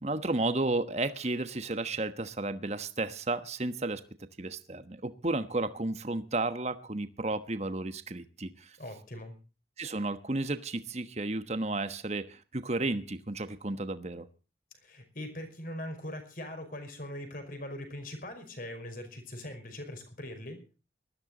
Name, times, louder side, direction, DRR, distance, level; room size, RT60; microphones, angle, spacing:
voice 1, 0.0-4.0 4.4-8.8 9.8-14.3, right 2 dB, 35° right, 11 dB, 1.2 m, -33 dB
voice 2, 8.8-9.4 14.8-20.6, left 1 dB, 50° left, 6 dB, 5.2 m, -41 dB
19.5 x 14.5 x 4.0 m, 0.34 s
head